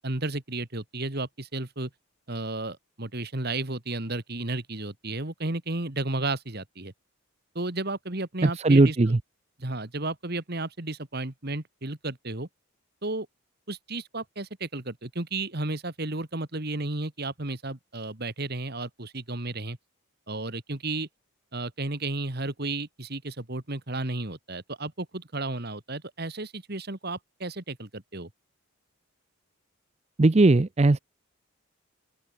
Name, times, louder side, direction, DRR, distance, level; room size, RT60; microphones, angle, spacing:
voice 1, 0.0-1.9 2.3-6.9 7.6-9.0 9.6-12.5 13.0-13.3 13.7-19.8 20.3-21.1 21.5-28.3, right 2 dB, 45° right, 1.9 m, -33 dB
voice 2, 8.4-9.2 30.2-31.0, right 2 dB, 30° right, 0.5 m, -19 dB
open air
head